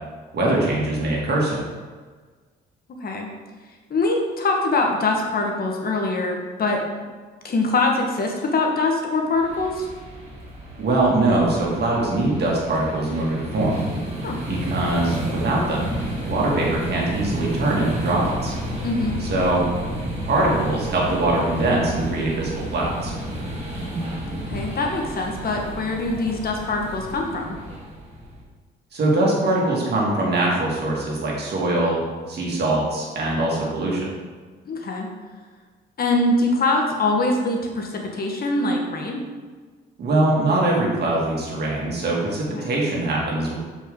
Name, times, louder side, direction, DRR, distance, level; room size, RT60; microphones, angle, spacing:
voice 1, 0.3-1.6 10.8-13.7 14.5-15.9 16.2-18.5 19.2-19.6 20.3-23.1 28.9-32.0 32.3-34.1 40.0-43.5, right 2 dB, 55° right, -3 dB, 2.2 m, -22 dB
voice 2, 3.9-6.8 7.4-9.9 14.2-14.4 18.8-19.2 24.3-27.5 34.7-35.1 36.0-39.2 42.5-42.7, left 2 dB, 50° left, 1 dB, 1.3 m, -23 dB
sound 1, 9.4-28.4, right 1 dB, 35° right, 2.2 m, -31 dB
7.1 x 5.3 x 3.8 m, 1.4 s
cardioid pair, 90°, 20 cm